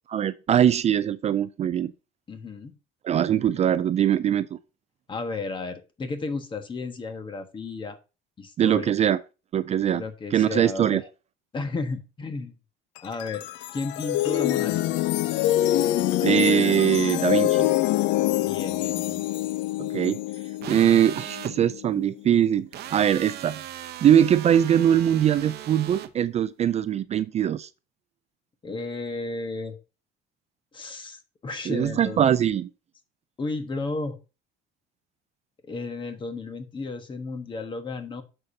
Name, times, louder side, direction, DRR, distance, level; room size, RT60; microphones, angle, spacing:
voice 1, 0.1-1.9 3.0-4.6 8.6-9.2 9.5-10.0 10.3-11.0 16.2-17.7 19.8-20.2 20.7-23.6 24.0-27.7 31.7-32.7, right 10 dB, 35° right, 0.3 m, -22 dB
voice 2, 2.3-2.7 5.1-8.0 8.4-8.9 9.9-11.0 11.5-12.5 13.0-13.4 13.7-14.9 18.4-19.2 28.6-29.7 30.7-32.3 33.4-34.2 35.6-38.2, left 3 dB, 25° left, 1.2 m, -33 dB
sound 1, 13.0-22.2, left 14 dB, 70° left, 0.4 m, -25 dB
sound 2, 20.6-21.5 22.7-26.1, right 12 dB, 60° right, 0.7 m, -38 dB
9.5 x 6.7 x 2.7 m
cardioid pair, 140°, 19 cm